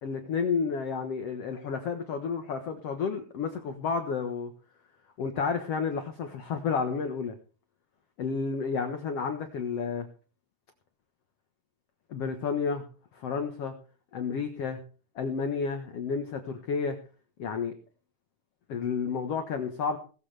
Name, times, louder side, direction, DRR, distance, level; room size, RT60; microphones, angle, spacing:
voice 1, 0.0-4.5 5.2-7.4 8.2-10.1 12.1-12.8 13.1-13.7 14.1-14.8 15.2-17.0 17.4-17.7 18.7-20.0, left 5 dB, 55° left, 6 dB, 1.9 m, -31 dB
19.0 x 14.5 x 3.5 m, 0.38 s
omnidirectional pair, 4.4 m